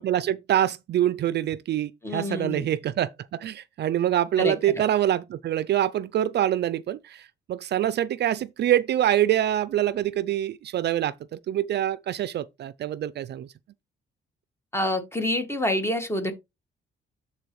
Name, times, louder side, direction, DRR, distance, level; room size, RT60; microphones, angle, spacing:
voice 1, 0.0-13.5, right 11 dB, 60° right, 0.4 m, -25 dB
voice 2, 2.0-2.7 4.4-4.8 14.7-16.3, left 1 dB, 10° left, 2.0 m, -27 dB
12.0 x 4.2 x 3.1 m
cardioid pair, 90°, 20 cm